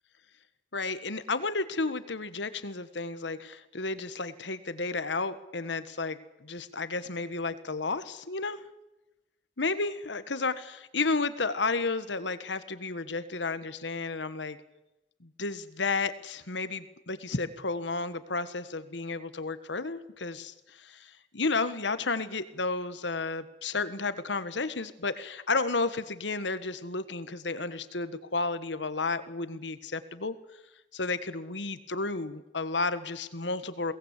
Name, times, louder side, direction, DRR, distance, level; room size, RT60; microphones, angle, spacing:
voice 1, 0.7-8.6 9.6-14.6 15.2-30.3 30.9-33.9, left 3 dB, 90° left, 13 dB, 1.5 m, -32 dB
22.5 x 18.5 x 8.3 m, 0.95 s
head